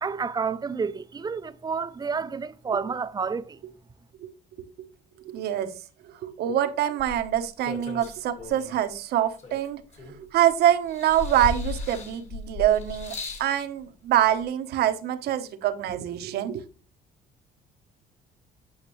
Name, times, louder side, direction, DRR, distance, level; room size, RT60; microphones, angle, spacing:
voice 1, 0.0-3.6, right 5 dB, 25° right, 0.5 m, -30 dB
voice 2, 5.2-5.7 6.0-16.6, right 11 dB, 70° right, 1.0 m, -25 dB
sound 1, 7.0-8.8 9.4-10.5 10.9-13.5 14.4-14.5, left 3 dB, 40° left, 2.1 m, -36 dB
8.8 x 5.7 x 3.1 m
cardioid pair, 110°, 17 cm